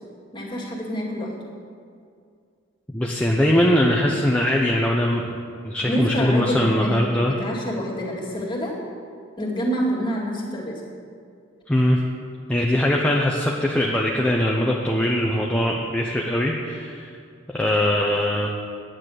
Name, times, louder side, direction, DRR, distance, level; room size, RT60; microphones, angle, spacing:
voice 1, 0.3-1.3 5.8-8.8 9.4-10.8, equal, 25° left, -3 dB, 2.3 m, -27 dB
voice 2, 2.9-5.2 5.6-7.3 11.7-12.0 12.5-17.1 17.5-18.5, left 1 dB, 5° left, -2 dB, 0.7 m, -21 dB
10.0 x 9.1 x 6.5 m, 2.3 s
head